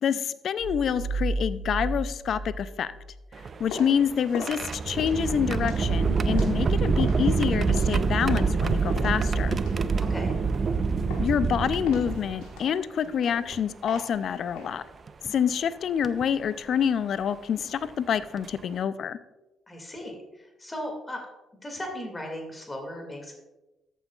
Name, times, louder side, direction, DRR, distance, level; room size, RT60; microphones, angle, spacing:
voice 1, 0.0-2.9 3.6-9.6 11.2-14.8 15.2-19.2, left 8 dB, 60° left, 15 dB, 0.5 m, -27 dB
sound 1, 0.6-3.2, right 2 dB, 85° right, 1.0 m, -32 dB
sound 2, 3.3-12.6 13.5-13.6 15.1-15.3 16.0-16.2 17.8-17.9 18.4-18.6, right 4 dB, 45° right, 0.5 m, -26 dB
sound 3, 3.4-8.6 9.0-10.8 11.1-11.5 11.9-14.7, left 3 dB, 80° left, 1.4 m, -40 dB
voice 2, 10.0-10.4 19.7-21.2 21.6-23.3, left 1 dB, 25° left, 2 dB, 2.3 m, -37 dB
13.5 x 8.3 x 2.4 m, 1.1 s
hypercardioid pair, 45°, 0 cm